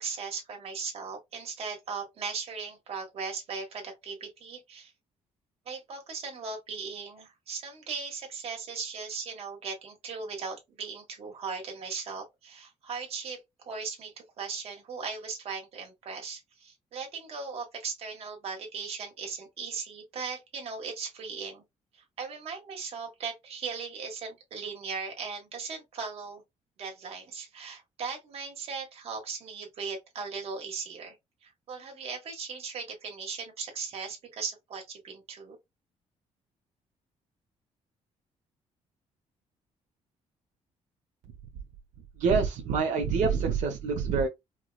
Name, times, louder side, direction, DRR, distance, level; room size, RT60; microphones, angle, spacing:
voice 1, 0.0-4.9 5.7-13.4 13.7-21.6 21.9-26.4 26.8-31.2 31.4-35.6, right 5 dB, 55° right, 1.6 m, -38 dB
voice 2, 42.2-44.3, right 5 dB, 85° right, 1.1 m, -26 dB
4.8 x 2.3 x 2.4 m
cardioid pair, 160°, 12 cm